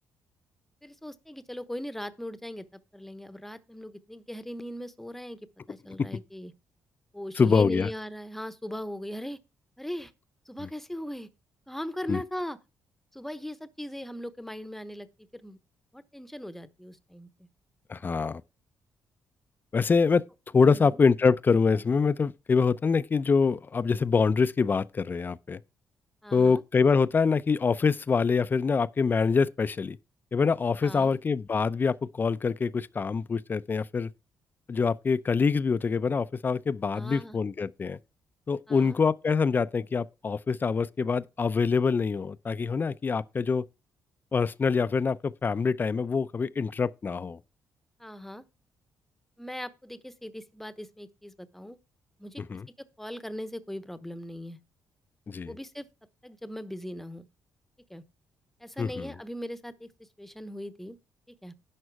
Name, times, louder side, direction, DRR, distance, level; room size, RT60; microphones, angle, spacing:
voice 1, 0.8-6.5 7.1-9.4 9.8-10.1 10.5-11.3 11.7-12.6 13.1-15.6 15.9-17.3 20.7-21.0 26.2-26.6 30.8-31.2 36.9-37.4 38.7-39.0 48.0-48.4 49.4-51.8 52.2-52.4 52.8-54.6 55.5-55.9 56.2-57.3 57.9-58.0 58.6-59.9 60.2-61.0 61.3-61.5, equal, 5° left, 1.0 m, -39 dB
voice 2, 7.4-7.9 12.1-12.2 17.9-18.4 19.7-20.2 20.5-25.6 26.3-30.0 30.3-34.1 34.7-38.0 38.5-43.6 44.3-47.4 52.4-52.7 55.3-55.5 58.8-59.1, left 5 dB, 30° left, 0.6 m, -25 dB
11.0 x 6.2 x 4.7 m
cardioid pair, 100°, 6 cm